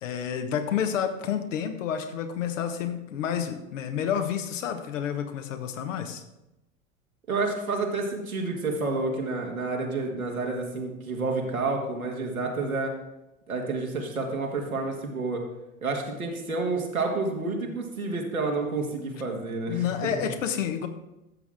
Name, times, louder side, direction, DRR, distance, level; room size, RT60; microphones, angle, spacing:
voice 1, 0.0-6.2 19.6-20.9, left 8 dB, 65° left, 7 dB, 1.3 m, -29 dB
voice 2, 7.3-12.9 13.5-15.5 15.8-20.3, right 3 dB, 85° right, 0 dB, 1.9 m, -29 dB
13.5 x 7.4 x 3.6 m, 0.94 s
figure-of-eight pair, 85°, 41 cm